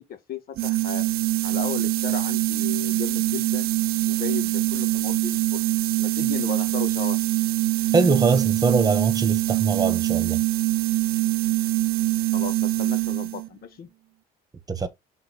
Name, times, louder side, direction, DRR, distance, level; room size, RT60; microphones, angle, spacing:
voice 1, 0.3-1.1 1.4-3.7 4.1-5.6 6.0-7.2 12.3-13.9, left 8 dB, 60° left, 1.6 m, -35 dB
sound 1, 0.6-13.5, right 17 dB, 65° right, 0.4 m, -24 dB
voice 2, 7.9-10.4 14.7-14.9, right 4 dB, 20° right, 1.4 m, -22 dB
5.7 x 3.9 x 4.2 m
cardioid pair, 110°, 17 cm